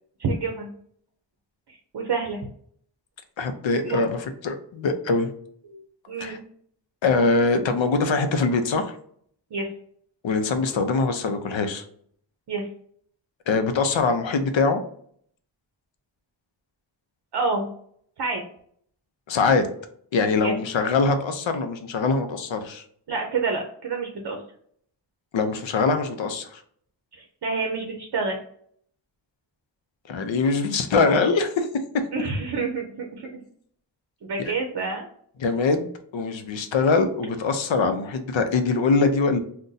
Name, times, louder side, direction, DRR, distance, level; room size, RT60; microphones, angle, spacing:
voice 1, 0.2-0.7 1.7-2.4 3.8-4.1 5.6-6.4 9.5-9.7 12.5-12.7 17.3-17.7 18.2-18.4 20.4-20.6 23.1-24.4 27.1-28.4 32.1-33.3 34.2-35.1, right 4 dB, 60° right, 2 dB, 0.6 m, -28 dB
voice 2, 3.4-5.3 6.2-6.4 7.0-8.9 10.2-11.8 13.5-14.8 19.3-19.7 20.1-22.8 25.3-26.6 30.1-31.7 34.4-34.5 35.4-35.9 36.1-39.4, left 4 dB, 85° left, 7 dB, 0.6 m, -23 dB
2.6 x 2.2 x 3.8 m, 0.62 s
wide cardioid pair, 85°, 44 cm